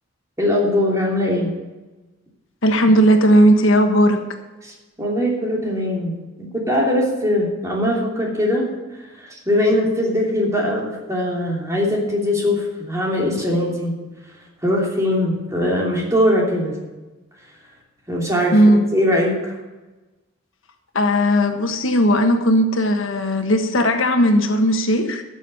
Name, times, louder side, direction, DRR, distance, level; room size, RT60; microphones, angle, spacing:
voice 1, 0.4-1.5 4.6-8.7 9.2-14.0 14.6-16.8 18.1-19.5, left 1 dB, 15° right, -2 dB, 2.9 m, -21 dB
voice 2, 2.6-4.2 18.5-18.9 20.9-25.2, equal, 85° left, 5 dB, 1.4 m, -16 dB
13.5 x 7.3 x 7.0 m, 1.1 s
head